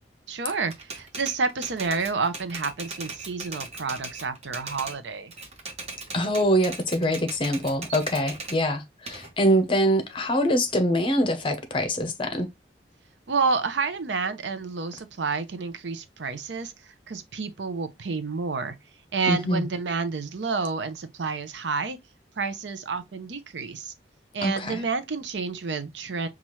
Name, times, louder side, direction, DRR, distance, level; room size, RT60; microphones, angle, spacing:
voice 1, 0.3-5.3 13.3-18.7 19.1-22.0 22.4-23.9 24.3-26.3, right 4 dB, 85° right, 0.6 m, -29 dB
Typewriter, 0.7-5.0 5.3-8.6 9.1-10.7, right 3 dB, 35° right, 1.0 m, -39 dB
voice 2, 6.1-12.5 19.3-19.7 24.4-24.8, equal, 30° left, 0.7 m, -24 dB
5.6 x 2.4 x 3.1 m
head